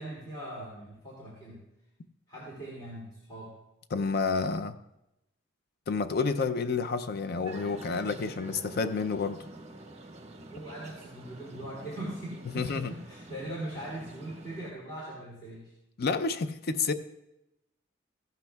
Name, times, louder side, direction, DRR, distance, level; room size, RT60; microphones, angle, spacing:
voice 1, 0.0-1.6 2.3-3.5 10.5-15.7, right 1 dB, 25° left, 2.6 m, -41 dB
voice 2, 3.9-4.8 5.9-9.5 12.5-12.9 16.0-16.9, left 4 dB, 50° left, 0.5 m, -29 dB
sound 1, 7.4-14.7, right 2 dB, 35° right, 1.2 m, -47 dB
16.0 x 11.5 x 2.3 m
head